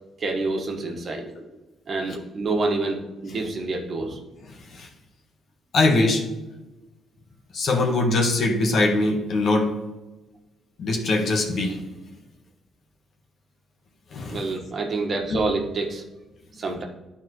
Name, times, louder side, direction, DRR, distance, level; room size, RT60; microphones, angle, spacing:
voice 1, 0.2-1.3 1.9-4.2 14.3-16.0 16.5-16.8, right 3 dB, 50° right, 1 dB, 1.4 m, -27 dB
voice 2, 4.4-4.9 5.7-6.2 7.5-9.7 10.8-11.8 14.1-14.5 15.3-15.4, left 2 dB, 60° left, 2 dB, 1.3 m, -22 dB
11.0 x 4.2 x 3.1 m, 1.1 s
cardioid pair, 90°, 0 cm